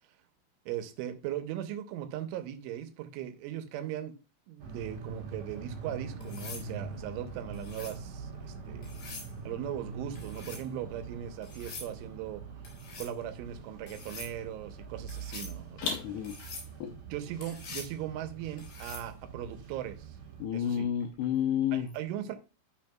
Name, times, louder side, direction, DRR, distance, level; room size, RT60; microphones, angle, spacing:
voice 1, 0.7-4.2 4.5-8.9 9.4-12.4 13.0-15.9 16.9-20.2 20.5-20.9 21.7-22.4, right 11 dB, 85° right, 3.3 m, -39 dB
sound 1, 4.6-20.4, right 4 dB, 50° right, 2.3 m, -44 dB
sound 2, 6.2-6.7 7.5-8.0 8.8-9.3 10.2-10.6 11.4-11.9 12.6-13.1 13.9-14.3 15.1-15.5 16.2-16.7 17.4-17.9 18.6-19.1 21.0-21.3, left 3 dB, 60° left, 5.7 m, -45 dB
voice 2, 15.8-16.3 16.8-16.9 20.4-21.9, left 9 dB, 85° left, 2.4 m, -30 dB
12.0 x 6.2 x 2.3 m
omnidirectional pair, 5.4 m